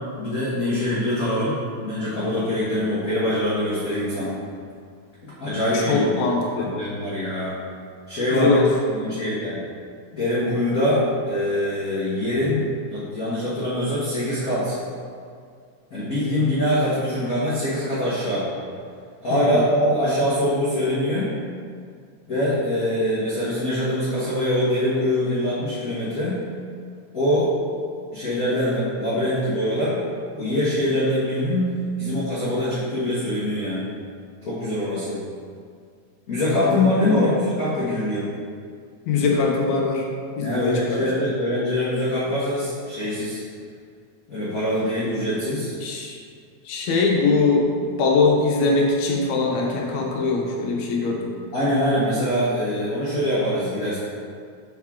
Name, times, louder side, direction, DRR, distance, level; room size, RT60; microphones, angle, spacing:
voice 1, 0.2-4.4 5.2-6.1 6.6-7.6 8.1-8.6 8.9-9.6 10.1-12.6 12.9-14.8 15.9-18.5 19.2-21.3 22.3-26.4 27.1-27.5 28.1-30.0 30.3-33.9 34.4-35.2 36.3-38.3 40.4-43.4 44.3-45.7 51.5-54.0, left 1 dB, 55° left, -10 dB, 1.0 m, -23 dB
voice 2, 5.7-6.7 8.3-8.7 19.3-19.6 36.6-37.2 39.1-40.0 40.4-41.0 45.8-46.2 46.7-51.3, left 4 dB, 75° left, -1 dB, 2.1 m, -22 dB
6.1 x 5.5 x 3.6 m, 2.2 s
omnidirectional pair, 3.4 m